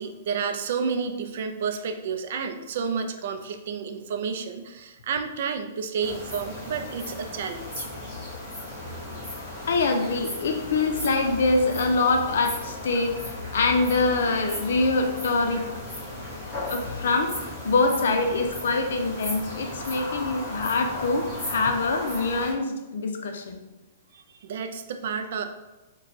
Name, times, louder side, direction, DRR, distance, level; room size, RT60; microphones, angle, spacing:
voice 1, 0.0-7.9 24.1-25.4, right 6 dB, 50° right, 7 dB, 0.3 m, -31 dB
sound 1, 6.0-22.5, left 1 dB, 10° left, 1.3 m, -36 dB
sound 2, 6.1-21.6, left 1 dB, 55° left, 1.1 m, -46 dB
voice 2, 9.7-15.6 16.7-23.6, left 3 dB, 70° left, 5 dB, 0.5 m, -24 dB
3.0 x 2.2 x 4.0 m, 1.1 s
hypercardioid pair, 170°, 0 cm